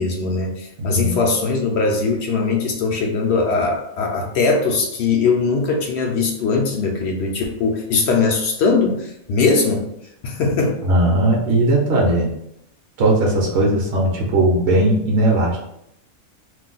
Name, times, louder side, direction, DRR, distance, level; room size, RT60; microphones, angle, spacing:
voice 1, 0.0-9.9 10.2-10.8, left 4 dB, 65° left, 1 dB, 0.7 m, -20 dB
voice 2, 0.8-1.3 10.8-12.3 13.0-15.6, right 1 dB, 60° right, -2 dB, 0.8 m, -18 dB
2.5 x 2.2 x 3.8 m, 0.79 s
omnidirectional pair, 1.5 m